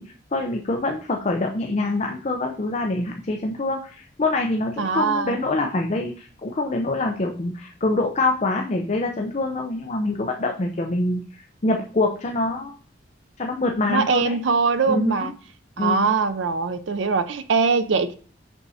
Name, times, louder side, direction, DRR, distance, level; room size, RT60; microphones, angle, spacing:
voice 1, 0.0-12.8 13.4-14.4 14.9-15.3 15.8-16.1, left 2 dB, 35° left, 2 dB, 0.6 m, -25 dB
voice 2, 4.8-5.4 13.9-15.3 15.8-18.1, right 4 dB, 75° right, 11 dB, 0.6 m, -22 dB
6.9 x 6.0 x 2.7 m, 0.41 s
head